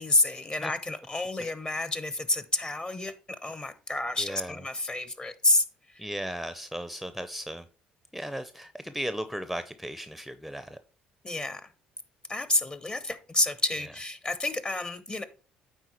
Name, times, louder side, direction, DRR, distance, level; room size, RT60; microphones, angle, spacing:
voice 1, 0.0-3.1 3.4-6.1 11.2-11.7 12.3-15.2, left 2 dB, 25° left, 0.9 m, -29 dB
voice 2, 4.2-4.6 6.0-7.7 8.1-10.8, equal, ahead, 0.6 m, -36 dB
9.2 x 3.8 x 4.3 m
hypercardioid pair, 60°, 4 cm